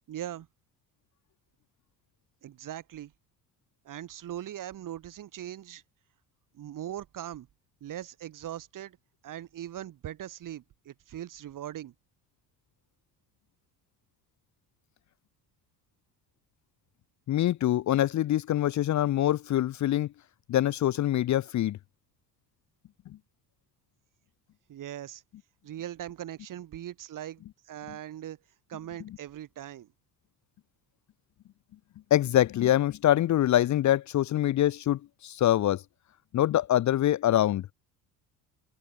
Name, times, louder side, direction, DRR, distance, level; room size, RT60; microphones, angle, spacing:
voice 1, 0.1-0.5 2.4-3.1 3.8-5.8 6.5-7.5 7.8-9.0 9.2-11.9 24.7-25.2 25.6-28.4 28.7-29.9, right 11 dB, 40° right, 2.5 m, -40 dB
voice 2, 17.3-20.1 20.5-21.8 32.1-35.8 36.3-37.7, left 12 dB, 35° left, 1.0 m, -24 dB
figure-of-eight pair, 55°, 47 cm